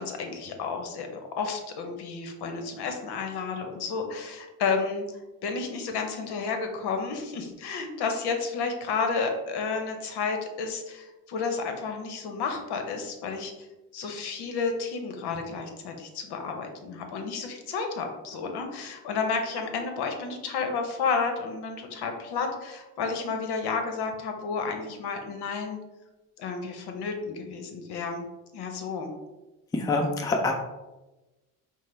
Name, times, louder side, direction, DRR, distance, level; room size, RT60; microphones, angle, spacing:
voice 1, 0.0-5.0 5.4-13.7 13.9-25.8 26.4-28.3 28.5-29.1, left 4 dB, 60° left, 5 dB, 0.9 m, -31 dB
voice 2, 29.7-30.5, left 3 dB, 10° left, 2 dB, 0.4 m, -25 dB
5.5 x 2.1 x 3.2 m, 1.1 s
supercardioid pair, 85°, 45 cm